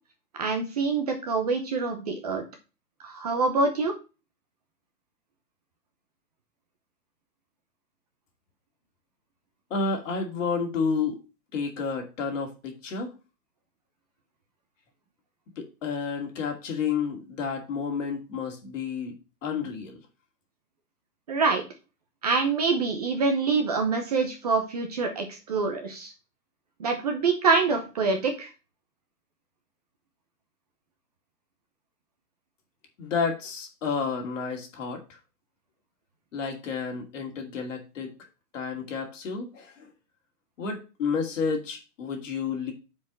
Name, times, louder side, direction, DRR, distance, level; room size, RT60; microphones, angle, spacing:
voice 1, 0.3-2.4 3.0-3.9 21.3-21.6 22.2-26.1 26.8-28.5, right 4 dB, 25° right, 4 dB, 0.8 m, -25 dB
voice 2, 9.7-11.2 11.5-13.1 15.6-19.2 19.4-20.0 33.0-35.0 36.3-38.2 38.5-39.9 40.6-42.7, left 5 dB, 50° left, 2 dB, 2.6 m, -30 dB
6.1 x 4.9 x 6.2 m, 0.30 s
hypercardioid pair, 170°, 48 cm